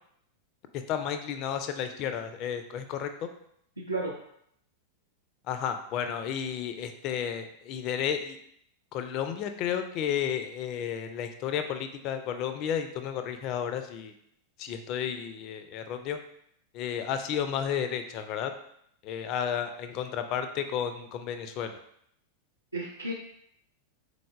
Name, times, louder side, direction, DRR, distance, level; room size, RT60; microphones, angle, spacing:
voice 1, 0.7-3.3 5.5-8.4 8.9-14.1 14.6-16.2 16.7-18.5 19.0-21.7, left 8 dB, 40° left, 8 dB, 0.3 m, -32 dB
voice 2, 3.8-4.1 22.7-23.1, right 2 dB, 85° right, -5 dB, 0.5 m, -32 dB
3.8 x 3.3 x 2.4 m, 0.71 s
figure-of-eight pair, 90°, 0 cm